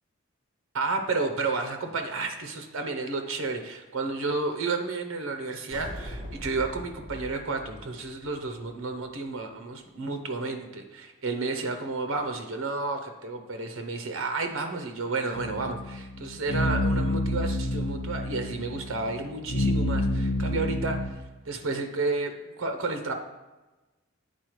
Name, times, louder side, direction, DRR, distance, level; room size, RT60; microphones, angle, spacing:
voice 1, 0.7-21.1 21.5-23.1, right 3 dB, 70° right, 6 dB, 0.7 m, -31 dB
sound 1, 5.7-9.1, equal, 20° right, 1.6 m, -41 dB
sound 2, 15.3-21.1, left 1 dB, 75° left, 0.7 m, -28 dB
9.5 x 4.2 x 3.1 m, 1.1 s
head